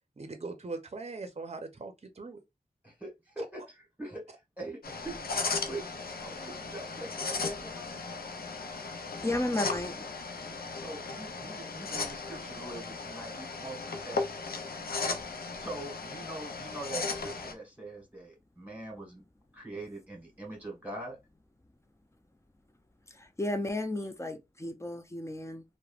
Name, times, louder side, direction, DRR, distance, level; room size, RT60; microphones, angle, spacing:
voice 1, 0.2-2.4, right 3 dB, 45° right, 0.6 m, -40 dB
voice 2, 2.8-5.2 5.4-7.9 10.4-14.6 15.6-19.2 19.5-21.2, right 2 dB, 10° right, 1.7 m, -43 dB
sound 1, 4.8-17.5, left 4 dB, 75° left, 0.5 m, -36 dB
voice 3, 9.2-10.0 23.1-25.6, left 1 dB, 20° left, 0.5 m, -33 dB
3.0 x 2.1 x 2.4 m
wide cardioid pair, 65°, 16 cm